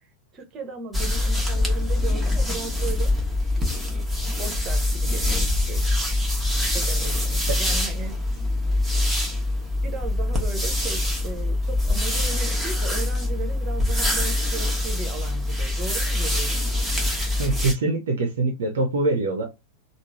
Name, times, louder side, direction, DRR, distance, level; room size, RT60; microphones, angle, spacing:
voice 1, 0.3-3.1 4.4-5.8 6.7-8.2 9.8-16.6, right 5 dB, 30° right, 1.0 m, -36 dB
sound 1, 0.9-17.7, left 1 dB, ahead, 1.1 m, -24 dB
voice 2, 17.4-19.4, right 2 dB, 60° right, 0.7 m, -24 dB
3.6 x 2.1 x 3.0 m
figure-of-eight pair, 90°, 0 cm